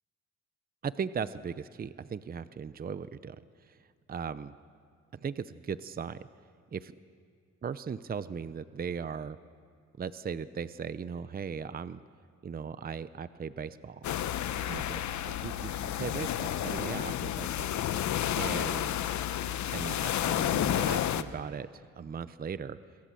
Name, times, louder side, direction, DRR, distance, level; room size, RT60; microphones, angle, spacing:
voice 1, 0.8-3.8 4.1-4.5 5.1-6.2 6.7-6.9 7.6-9.4 10.0-12.0 12.4-14.1 14.7-15.0 15.3-17.7 18.3-19.1 19.7-22.8, right 6 dB, 30° right, 14 dB, 0.7 m, -38 dB
sound 1, 14.0-21.2, left 11 dB, 70° left, 1.0 m, -31 dB
27.0 x 22.5 x 7.7 m, 2.1 s
cardioid pair, 90°, 30 cm